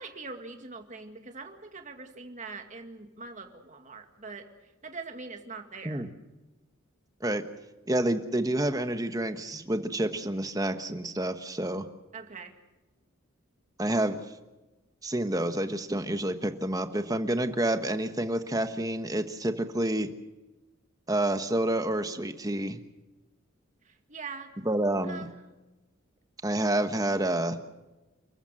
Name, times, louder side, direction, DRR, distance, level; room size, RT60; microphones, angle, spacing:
voice 1, 0.0-4.5 4.8-6.0 12.1-12.5 23.9-24.5 25.1-25.3, right 4 dB, 35° right, 5 dB, 2.1 m, -42 dB
voice 2, 7.9-11.9 13.8-14.2 15.0-20.1 21.1-22.8 24.6-25.3 26.4-27.6, right 1 dB, 15° right, 8 dB, 1.3 m, -28 dB
29.5 x 14.5 x 7.6 m, 1.1 s
head